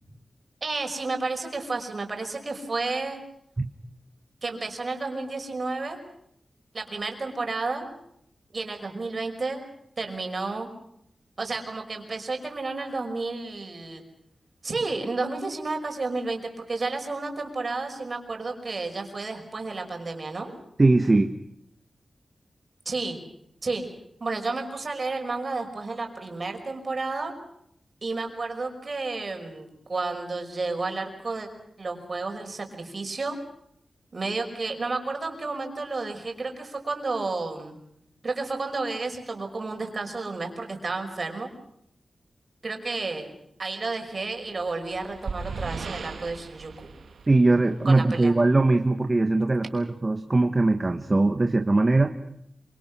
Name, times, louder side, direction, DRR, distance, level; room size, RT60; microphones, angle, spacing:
voice 1, 0.6-3.2 4.4-6.0 6.7-7.9 8.5-9.7 10.0-10.7 11.4-14.0 14.6-20.6 22.9-23.2 23.6-23.9 24.2-27.3 28.0-31.5 31.8-33.4 34.1-37.8 38.2-41.5 42.6-43.3 43.6-46.9 47.8-48.4, right 3 dB, 45° right, 4 dB, 5.5 m, -31 dB
voice 2, 20.8-21.3 47.3-52.1, right 2 dB, 30° right, 6 dB, 1.4 m, -21 dB
sound 1, 44.4-48.1, right 5 dB, 85° right, 1.6 m, -38 dB
26.5 x 25.5 x 6.3 m, 0.74 s
wide cardioid pair, 100°, 0 cm